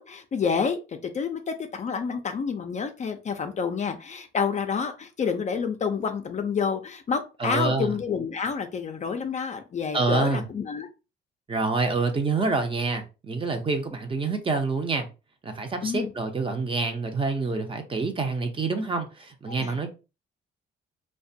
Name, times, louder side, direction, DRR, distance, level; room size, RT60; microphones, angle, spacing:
voice 1, 0.0-10.9 15.8-16.1 19.6-19.8, left 6 dB, 35° left, 0.4 m, -29 dB
voice 2, 7.4-7.9 9.9-10.5 11.5-15.1 15.4-19.9, right 3 dB, 25° right, 0.6 m, -27 dB
2.3 x 2.2 x 2.6 m
cardioid pair, 90°, 20 cm